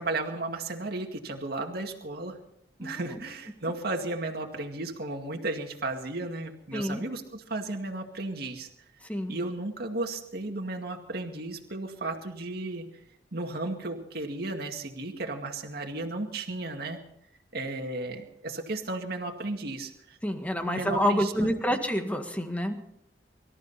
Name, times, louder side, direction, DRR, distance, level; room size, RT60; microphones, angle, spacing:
voice 1, 0.0-2.4 2.8-8.7 9.3-12.8 13.3-17.0 17.5-20.2 20.7-21.5, right 2 dB, 60° right, 3 dB, 2.2 m, -34 dB
voice 2, 20.2-22.8, equal, 10° left, 6 dB, 1.7 m, -28 dB
24.5 x 13.5 x 4.2 m, 0.74 s
head